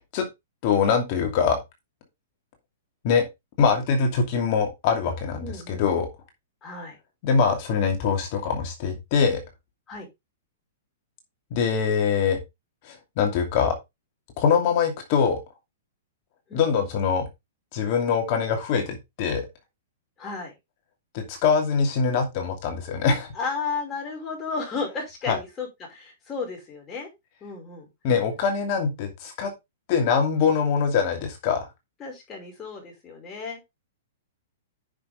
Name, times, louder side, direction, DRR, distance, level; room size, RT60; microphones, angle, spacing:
voice 1, 0.6-1.6 3.0-3.3 3.6-6.1 7.2-9.4 11.5-12.4 12.8-13.8 14.4-15.4 16.5-17.3 17.7-19.4 21.1-23.3 25.3-25.4 28.0-29.5 29.9-31.7, left 6 dB, 40° left, 3 dB, 2.6 m, -23 dB
voice 2, 5.4-5.9 6.6-7.0 9.9-10.1 16.5-16.6 20.2-20.5 23.3-27.1 27.4-27.9 32.0-33.6, left 4 dB, 20° left, -1 dB, 5.5 m, -33 dB
10.0 x 6.3 x 3.7 m, 0.21 s
hypercardioid pair, 160°, 0 cm